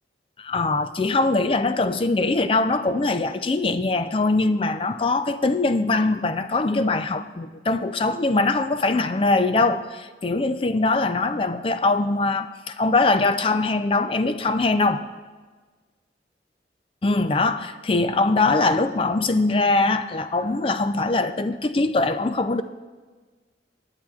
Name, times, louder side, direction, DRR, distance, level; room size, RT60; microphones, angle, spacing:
voice 1, 0.4-15.0 17.0-22.6, left 3 dB, 30° left, 11 dB, 0.4 m, -22 dB
20.0 x 9.0 x 2.4 m, 1.4 s
head